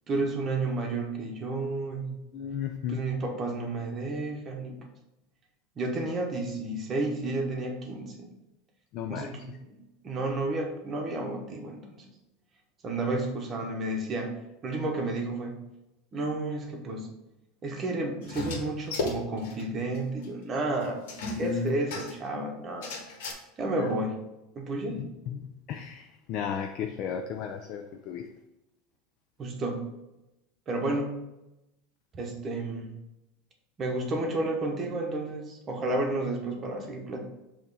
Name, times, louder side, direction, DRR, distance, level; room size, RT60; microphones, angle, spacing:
voice 1, 0.1-2.1 2.9-4.8 5.8-8.3 9.1-9.8 10.0-12.1 12.8-14.4 14.6-15.6 16.1-17.1 17.6-21.0 21.4-22.9 23.6-24.2 24.5-25.1 29.4-29.9 30.7-31.1 32.1-32.9 33.8-37.2, right 2 dB, 20° right, 1 dB, 0.9 m, -31 dB
voice 2, 2.3-3.0 8.9-9.3 21.3-21.8 23.8-23.9 24.9-25.4 25.7-28.3, left 7 dB, 35° left, 5 dB, 0.4 m, -34 dB
sound 1, 18.2-19.6 19.9-20.0 20.2-20.3 21.1-22.3 22.8-23.3, left 2 dB, 80° left, 1.7 m, -35 dB
6.9 x 3.0 x 5.4 m, 0.94 s
supercardioid pair, 180°, 0 cm